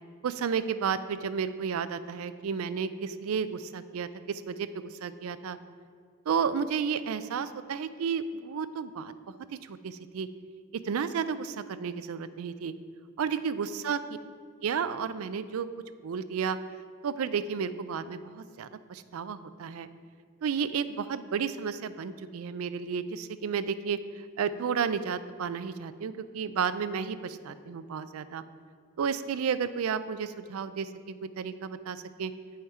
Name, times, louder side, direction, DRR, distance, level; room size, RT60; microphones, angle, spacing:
voice 1, 0.2-5.6 6.3-9.1 9.6-10.3 10.8-12.7 13.2-14.0 14.6-15.7 16.0-16.6 17.0-19.9 20.4-24.0 24.4-28.4 29.0-32.3, right 6 dB, 80° right, 13 dB, 0.4 m, -32 dB
9.4 x 5.7 x 4.3 m, 2.2 s
head